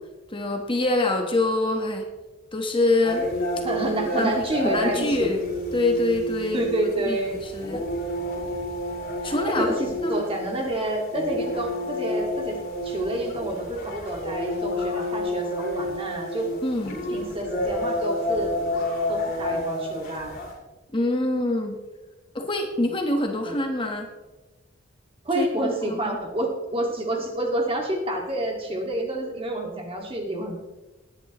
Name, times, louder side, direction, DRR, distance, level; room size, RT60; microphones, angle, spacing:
voice 1, 0.3-2.0 2.5-3.3 4.2-4.3 4.6-5.4 5.7-6.6 7.1-7.8 9.2-9.7 10.0-10.2 16.6-17.0 20.9-21.8 22.3-24.1 25.3-26.2, left 2 dB, 25° left, 3 dB, 1.2 m, -25 dB
sound 1, 3.0-20.5, equal, 45° left, 4.1 m, -30 dB
voice 2, 3.6-5.3 6.5-7.4 9.2-12.6 12.8-16.5 17.1-18.5 19.1-20.4 22.8-22.9 23.4-23.6 25.2-30.6, right 1 dB, 30° right, 1 dB, 2.0 m, -28 dB
19.5 x 10.5 x 3.1 m, 1.1 s
head